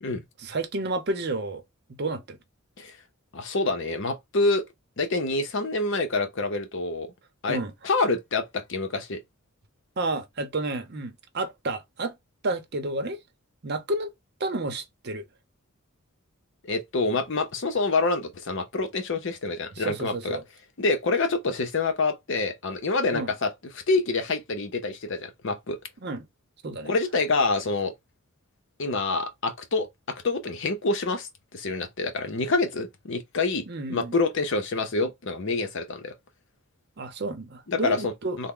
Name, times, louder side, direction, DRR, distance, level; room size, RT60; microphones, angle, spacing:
voice 1, 0.4-1.6 2.0-2.4 7.5-7.7 10.0-12.1 12.4-13.2 13.6-14.1 14.4-15.2 19.8-20.4 23.1-23.3 26.0-26.3 26.6-26.9 33.7-34.2 37.0-38.5, right 2 dB, 50° right, 0.7 m, -31 dB
voice 2, 3.3-4.7 5.0-7.1 7.4-7.6 7.8-9.2 16.6-20.4 20.8-25.8 26.8-27.9 28.8-36.1 37.7-38.5, left 3 dB, 60° left, 0.7 m, -27 dB
3.5 x 2.1 x 3.6 m
head